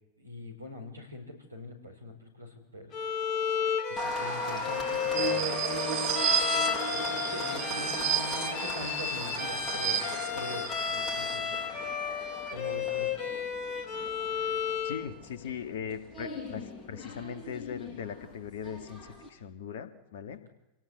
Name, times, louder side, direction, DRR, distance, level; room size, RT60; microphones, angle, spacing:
voice 1, 0.2-3.0 3.9-5.6 6.6-11.6 12.5-13.1 20.3-20.5, left 1 dB, 80° right, 4 dB, 5.1 m, -43 dB
Bowed string instrument, 2.9-15.1, left 7 dB, 35° left, 3.5 m, -33 dB
Applause, 4.0-19.3, left 2 dB, 20° left, 8.0 m, -39 dB
sound 1, 5.1-11.4, right 10 dB, 45° right, 3.0 m, -33 dB
voice 2, 14.8-20.4, left 7 dB, 60° left, 9 dB, 2.0 m, -39 dB
27.5 x 18.5 x 8.1 m, 0.97 s
figure-of-eight pair, 90°, 0 cm